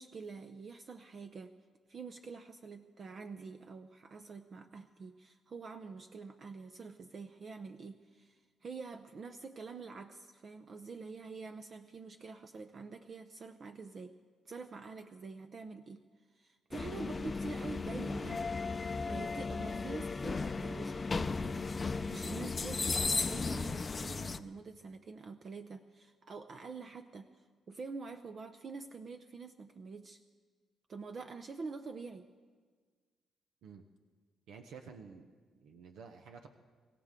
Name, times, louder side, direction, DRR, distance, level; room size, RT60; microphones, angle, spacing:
voice 1, 0.0-1.5 1.9-14.1 14.4-16.0 16.3-18.5 19.1-30.2 30.9-32.3, right 4 dB, 45° right, 7 dB, 0.7 m, -46 dB
sound 1, 16.7-24.4, left 4 dB, 30° left, 0.6 m, -35 dB
voice 2, 34.5-36.5, right 5 dB, 80° right, 5 dB, 0.9 m, -52 dB
24.5 x 15.5 x 3.7 m, 1.5 s
cardioid pair, 90°, 0 cm